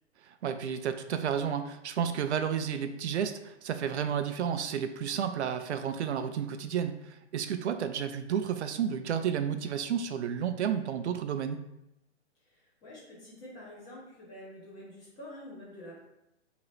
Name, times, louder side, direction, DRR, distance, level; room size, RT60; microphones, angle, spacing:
voice 1, 0.2-11.6, right 8 dB, 70° right, 9 dB, 0.5 m, -31 dB
voice 2, 12.4-16.0, left 1 dB, 10° left, -6 dB, 0.7 m, -47 dB
3.8 x 3.0 x 3.1 m, 0.87 s
hypercardioid pair, 155°, 35 cm